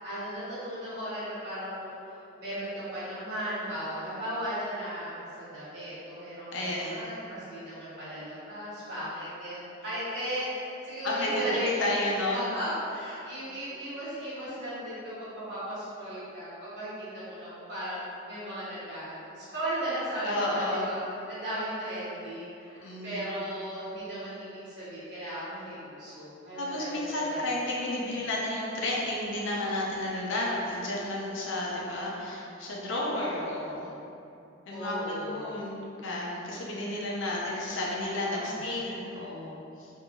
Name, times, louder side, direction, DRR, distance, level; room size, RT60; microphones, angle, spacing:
voice 1, 0.0-12.0 12.3-21.0 21.3-27.4 28.0-28.1 34.7-35.6 38.3-38.6, equal, 55° right, -12 dB, 1.2 m, -36 dB
voice 2, 6.5-7.1 11.0-12.4 20.2-20.9 22.8-23.3 26.6-33.9 34.7-39.9, left 1 dB, 60° left, -4 dB, 0.5 m, -32 dB
2.7 x 2.6 x 2.7 m, 2.7 s
head